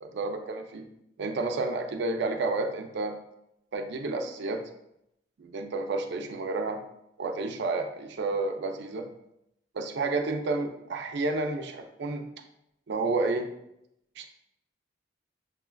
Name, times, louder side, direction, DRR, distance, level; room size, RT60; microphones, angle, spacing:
voice 1, 0.0-0.9 1.2-3.2 3.7-4.6 5.4-6.8 7.2-9.1 9.7-12.3 12.9-13.5 14.2-14.3, right 3 dB, 65° right, 5 dB, 0.4 m, -30 dB
6.6 x 2.2 x 2.2 m, 0.80 s
head